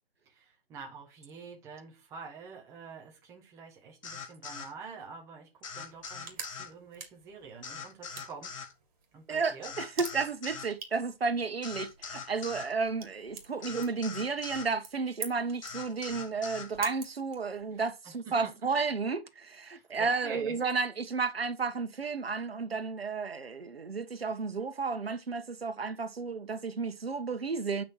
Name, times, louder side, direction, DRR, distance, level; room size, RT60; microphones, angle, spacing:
voice 1, 0.3-8.5 9.1-9.7 18.0-18.5 19.6-20.6, right 5 dB, 10° right, 1.3 m, -46 dB
sound 1, 4.0-4.7 5.6-6.7 7.6-8.7 9.6-10.7 11.6-12.7 13.6-14.7 15.6-16.7, left 6 dB, 35° left, 1.4 m, -42 dB
sound 2, 5.8-17.9, right 6 dB, 35° right, 2.4 m, -48 dB
voice 2, 9.3-27.8, right 4 dB, 75° right, 1.5 m, -32 dB
9.2 x 5.9 x 4.5 m
figure-of-eight pair, 155°, 30 cm